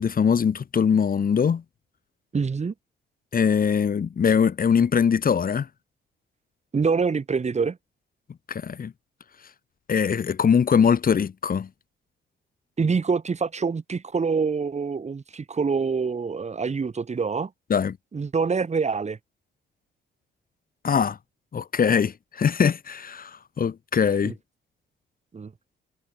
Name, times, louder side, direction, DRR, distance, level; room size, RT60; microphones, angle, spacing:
voice 1, 0.0-1.6 3.3-5.7 8.5-8.9 9.9-11.7 17.7-18.0 20.8-21.2 21.5-24.3, left 7 dB, 45° left, 4.0 m, -22 dB
voice 2, 2.3-2.7 6.7-7.8 12.8-17.5 18.1-19.2 24.2-24.3 25.3-25.5, right 5 dB, 35° right, 5.2 m, -25 dB
cardioid pair, 90°, 20 cm